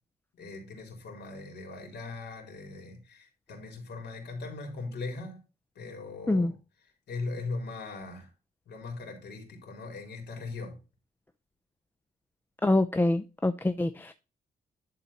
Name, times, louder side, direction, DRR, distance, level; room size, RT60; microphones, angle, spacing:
voice 1, 0.3-5.4 5.8-6.5 7.1-8.3 8.7-10.8, left 3 dB, 90° left, 3.9 m, -39 dB
voice 2, 12.6-14.1, left 2 dB, 10° left, 0.4 m, -25 dB
11.5 x 4.1 x 4.3 m
wide cardioid pair, 145°, 17 cm